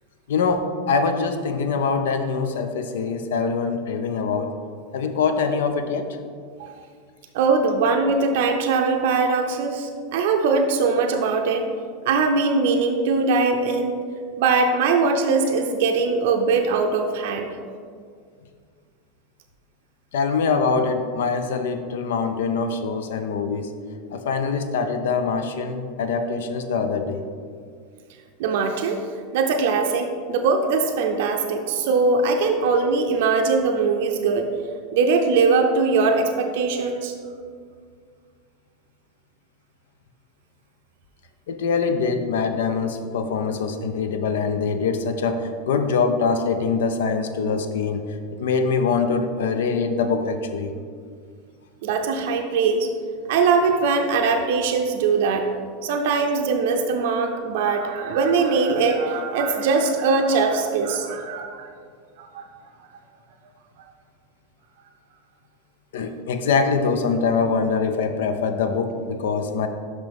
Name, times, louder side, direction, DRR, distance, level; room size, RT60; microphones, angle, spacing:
voice 1, 0.3-4.5 4.9-6.1 20.1-23.7 24.1-27.3 41.5-48.0 48.4-50.7 65.9-69.7, left 5 dB, 80° left, 8 dB, 0.5 m, -23 dB
voice 2, 7.3-11.7 12.1-13.9 14.4-17.5 28.4-29.0 29.3-34.5 34.9-37.1 51.8-52.9 53.3-55.5 55.8-61.7 62.2-62.4, right 4 dB, 70° right, 4 dB, 0.5 m, -21 dB
5.9 x 5.5 x 3.5 m, 2.1 s
hypercardioid pair, 110°, 0 cm